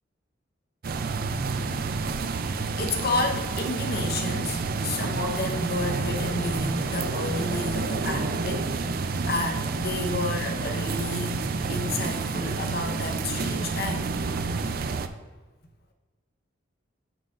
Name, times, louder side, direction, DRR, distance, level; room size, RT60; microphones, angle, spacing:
sound 1, 0.8-15.1, right 4 dB, 50° right, 0.4 m, -29 dB
voice 1, 2.5-11.4 11.7-14.2, left 2 dB, 55° left, 3 dB, 0.9 m, -31 dB
9.3 x 6.3 x 2.5 m, 1.3 s
head